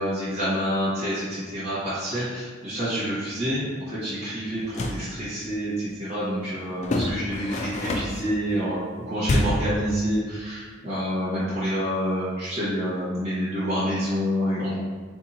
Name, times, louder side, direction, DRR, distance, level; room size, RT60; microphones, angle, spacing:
voice 1, 0.0-14.8, equal, 35° right, -13 dB, 1.1 m, -28 dB
sound 1, 4.6-5.1 6.8-8.3 9.2-9.7, left 1 dB, 35° left, 0.3 m, -26 dB
2.8 x 2.6 x 4.0 m, 1.5 s
head